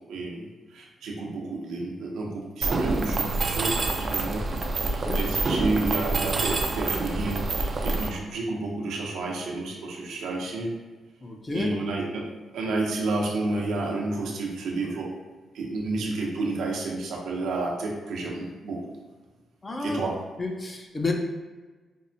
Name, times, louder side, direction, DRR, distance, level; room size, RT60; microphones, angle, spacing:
voice 1, 0.1-0.5 0.7-3.7 4.1-4.4 4.8-10.7 11.5-12.2 12.5-15.1 15.5-19.0 19.8-20.1, right 2 dB, 85° right, -1 dB, 0.6 m, -30 dB
Mechanisms, 2.6-8.1, right 3 dB, 45° right, 0.4 m, -27 dB
voice 2, 4.8-5.2 5.8-5.9 11.2-11.8 19.6-20.0 20.4-21.1, left 3 dB, 30° left, 2 dB, 0.6 m, -31 dB
5.2 x 2.1 x 2.6 m, 1.3 s
cardioid pair, 85°, 0 cm